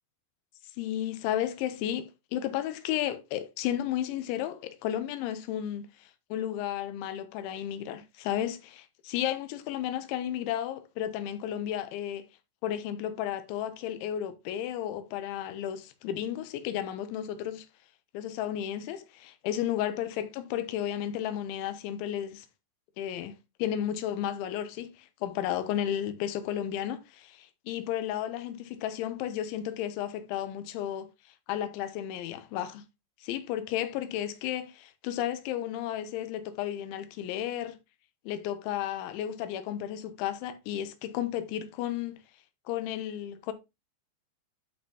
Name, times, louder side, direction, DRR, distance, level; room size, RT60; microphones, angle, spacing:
voice 1, 0.8-12.3 12.6-17.7 18.1-22.5 23.0-23.3 23.6-31.1 31.5-32.8 33.2-37.8 38.3-42.2 42.7-43.5, left 11 dB, 85° left, 3.2 m, -33 dB
12.0 x 4.4 x 2.9 m
omnidirectional pair, 5.4 m